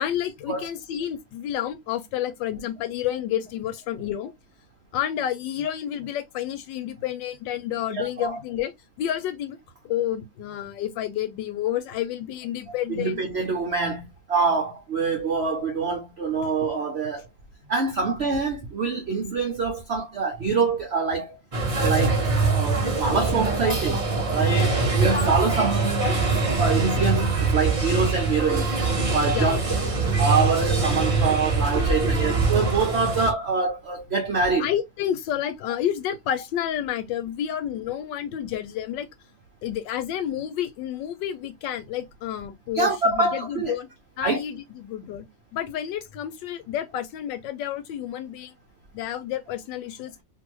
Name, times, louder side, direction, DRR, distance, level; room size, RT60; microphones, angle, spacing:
voice 1, 0.0-4.3 4.9-8.7 9.0-9.6 9.8-13.2 18.1-18.2 29.3-30.0 34.6-39.1 39.6-43.9 44.2-48.5 48.9-50.1, left 11 dB, 80° left, 1.3 m, -30 dB
voice 2, 7.9-8.4 12.9-17.3 17.7-21.4 21.8-26.1 26.6-28.8 29.1-29.6 30.2-34.7 42.7-43.8 44.2-44.4, right 4 dB, 70° right, 0.6 m, -25 dB
sound 1, 21.5-33.3, right 3 dB, 30° right, 0.6 m, -23 dB
2.7 x 2.7 x 3.0 m
omnidirectional pair, 2.0 m